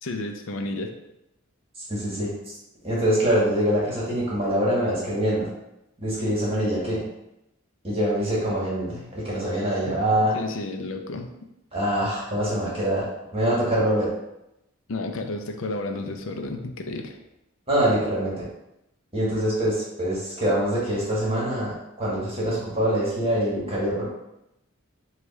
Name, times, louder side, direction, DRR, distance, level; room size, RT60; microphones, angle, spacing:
voice 1, 0.0-0.9 9.9-10.0 10.3-11.3 14.9-17.2, left 2 dB, 65° left, 5 dB, 0.5 m, -32 dB
voice 2, 1.9-2.3 2.8-5.5 6.0-7.0 7.8-10.4 11.7-13.0 13.3-14.1 17.7-18.5 19.1-24.0, right 1 dB, 25° right, -6 dB, 1.4 m, -24 dB
4.7 x 2.4 x 4.0 m, 0.86 s
head